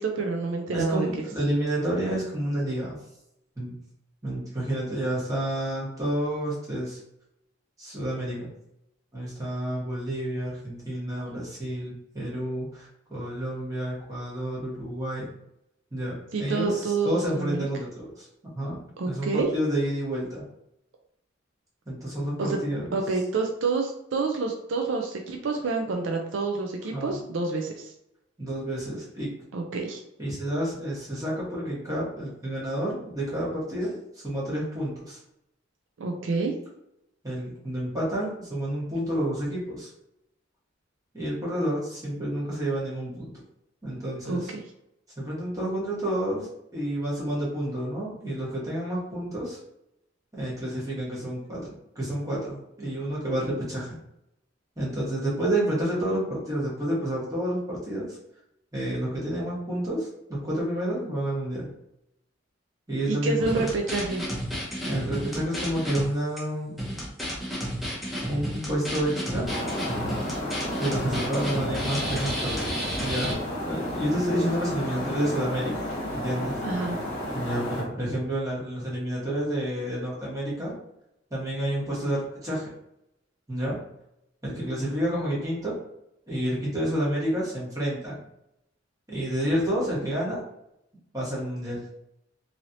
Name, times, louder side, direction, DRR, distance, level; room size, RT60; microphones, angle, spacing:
voice 1, 0.0-1.1 16.3-17.6 19.0-19.5 22.4-22.6 22.9-27.9 29.5-30.0 36.0-36.5 44.3-44.6 63.1-64.3 76.6-77.0, right 3 dB, 70° right, 2 dB, 0.4 m, -28 dB
voice 2, 0.7-3.0 3.6-3.8 4.2-7.0 7.8-8.5 9.1-15.3 15.9-18.3 18.5-18.8 19.0-20.4 21.9-22.9 26.9-27.2 28.4-29.3 30.2-35.2 37.2-39.9 41.1-43.3 43.8-44.5 45.2-49.6 50.3-51.7 51.9-54.0 54.8-58.2 58.7-61.7 62.9-63.7 64.8-66.7 68.3-69.5 70.8-72.6 73.0-75.9 76.1-76.6 77.3-80.7 81.3-82.7 83.5-83.8 84.4-85.8 86.3-88.2 89.1-90.4 91.1-91.8, right 1 dB, 20° right, -6 dB, 1.2 m, -29 dB
sound 1, 63.4-66.0 66.4-66.5 66.8-73.3, equal, ahead, 0.9 m, -32 dB
sound 2, 69.5-77.8, left 1 dB, 40° left, 1.1 m, -32 dB
3.1 x 2.7 x 2.6 m, 0.82 s
head